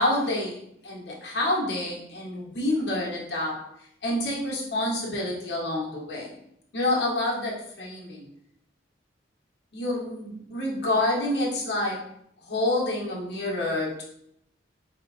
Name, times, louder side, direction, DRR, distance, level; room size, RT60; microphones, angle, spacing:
voice 1, 0.0-3.6 4.0-6.4 6.7-8.2 9.7-12.0 12.4-14.0, left 1 dB, 65° left, -3 dB, 1.0 m, -28 dB
4.4 x 2.9 x 2.5 m, 0.73 s
head